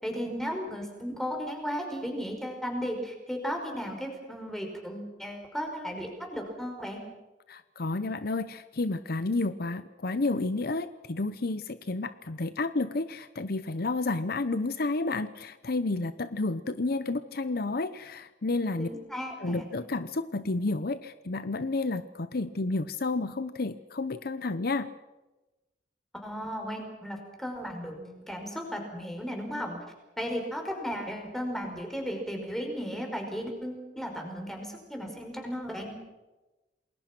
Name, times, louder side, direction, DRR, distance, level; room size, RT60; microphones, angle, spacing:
voice 1, 0.0-7.1 18.8-19.6 26.1-29.8 30.2-36.0, equal, ahead, 2 dB, 5.4 m, -35 dB
voice 2, 7.5-18.9 19.4-24.9, left 3 dB, 60° left, 13 dB, 0.8 m, -31 dB
28.5 x 20.5 x 6.1 m, 1.1 s
head